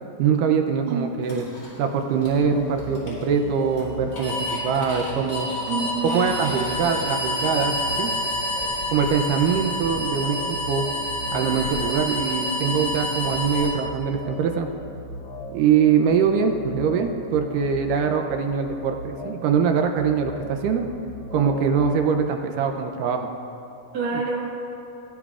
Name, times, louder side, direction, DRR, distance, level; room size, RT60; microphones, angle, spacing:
voice 1, 0.2-1.5 1.8-5.5 6.0-8.1 8.9-10.9 11.3-14.7 15.5-20.9 21.3-23.3 24.1-24.2, right 6 dB, 80° right, 4 dB, 2.2 m, -23 dB
sound 1, 1.2-13.7, left 1 dB, 40° left, 3.5 m, -29 dB
sound 2, 2.2-21.9, left 1 dB, 60° left, 1.5 m, -38 dB
voice 2, 5.7-6.3 23.9-24.5, right 4 dB, 40° right, -3 dB, 1.6 m, -27 dB
17.5 x 10.5 x 2.4 m, 2.9 s
omnidirectional pair, 3.7 m